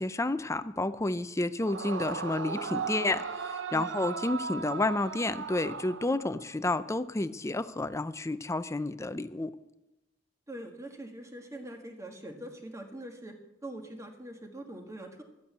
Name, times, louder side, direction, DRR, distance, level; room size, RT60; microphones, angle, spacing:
voice 1, 0.0-3.2 3.7-9.5, left 2 dB, 15° left, 12 dB, 0.5 m, -30 dB
Yell / Screaming, 1.6-6.5, right 5 dB, 85° right, 0.7 m, -37 dB
voice 2, 10.5-13.4 13.6-15.2, right 1 dB, 15° right, 3 dB, 1.6 m, -43 dB
13.0 x 8.4 x 8.2 m, 0.98 s
head